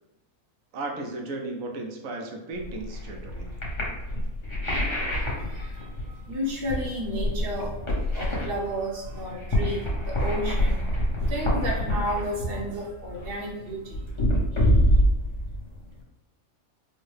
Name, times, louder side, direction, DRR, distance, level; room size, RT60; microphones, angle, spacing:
voice 1, 0.7-3.5, right 2 dB, 75° right, 2 dB, 1.0 m, -35 dB
sound 1, 2.6-16.0, equal, 25° left, 0.7 m, -26 dB
voice 2, 6.3-7.7 8.1-10.8 11.3-14.0, equal, 50° right, -1 dB, 0.9 m, -32 dB
4.5 x 2.2 x 3.2 m, 1.0 s
omnidirectional pair, 1.5 m